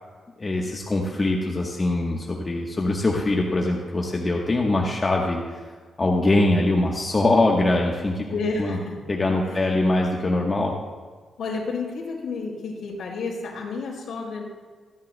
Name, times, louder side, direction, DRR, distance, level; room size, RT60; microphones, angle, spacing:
voice 1, 0.4-5.6 6.0-8.2 8.6-8.8 9.1-10.7, left 2 dB, 25° left, -1 dB, 1.1 m, -22 dB
voice 2, 8.3-9.0 9.4-9.7 11.4-14.4, left 4 dB, 65° left, -4 dB, 4.4 m, -31 dB
26.0 x 10.5 x 2.2 m, 1.5 s
wide cardioid pair, 150°, 0 cm